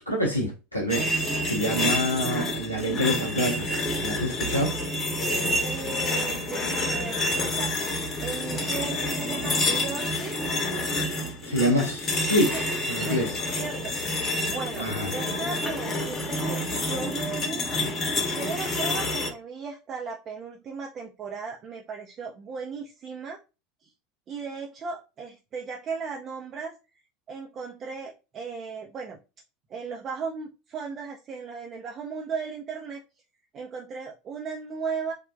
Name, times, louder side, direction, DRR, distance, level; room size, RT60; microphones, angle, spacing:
voice 1, 0.1-1.0 1.4-3.7 4.0-4.8 11.4-13.3 14.8-15.1, equal, 90° left, 0.6 m, -26 dB
sound 1, 0.9-19.3, left 1 dB, 30° left, 0.9 m, -28 dB
voice 2, 5.6-7.8 8.2-10.4 12.5-12.7 13.0-13.2 13.6-17.7 18.3-23.4 23.8-23.9 24.3-26.8 27.3-29.2 29.7-33.0 33.5-35.1, right 5 dB, 35° right, 0.5 m, -36 dB
3.3 x 2.1 x 2.4 m
figure-of-eight pair, 75°, 0 cm